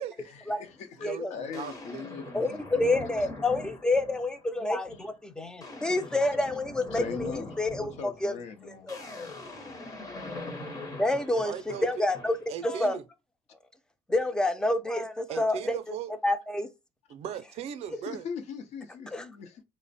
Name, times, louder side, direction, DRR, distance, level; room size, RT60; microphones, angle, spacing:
voice 1, 0.2-2.7 5.0-5.1 6.9-8.9 9.4-9.6 18.1-19.6, left 6 dB, 60° left, 0.7 m, -40 dB
sound 1, 0.7-0.8 1.5-4.4 4.8-5.1 5.4-12.5, left 2 dB, 25° left, 0.8 m, -42 dB
voice 2, 1.0-2.4 11.3-12.1 12.5-13.0 15.3-16.1 17.1-18.3, right 9 dB, 55° right, 0.5 m, -38 dB
voice 3, 2.3-8.3 8.9-9.3 11.0-12.4 12.6-13.0 14.1-15.8 16.2-16.7 19.1-19.2, left 2 dB, 5° left, 0.4 m, -28 dB
3.3 x 2.1 x 4.0 m
cardioid pair, 130°, 13 cm